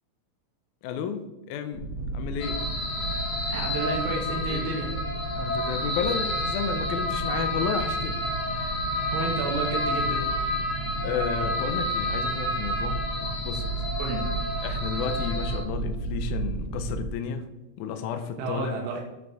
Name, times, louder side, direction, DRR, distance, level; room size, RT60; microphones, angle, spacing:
voice 1, 0.8-1.8 2.1-2.6 4.5-4.7 5.4-8.2 8.5-8.8 11.0-13.0 13.4-13.8 14.6-17.5 17.8-18.7, left 7 dB, 80° left, 8 dB, 1.8 m, -32 dB
sound 1, 1.7-17.1, right 2 dB, 65° right, 1.3 m, -33 dB
sound 2, 2.4-15.6, left 1 dB, 60° left, 1.1 m, -30 dB
voice 2, 3.5-4.9 9.1-10.2 14.0-14.2 18.4-19.0, right 4 dB, 80° right, 0 dB, 2.7 m, -31 dB
9.6 x 4.0 x 3.5 m, 1.0 s
omnidirectional pair, 4.1 m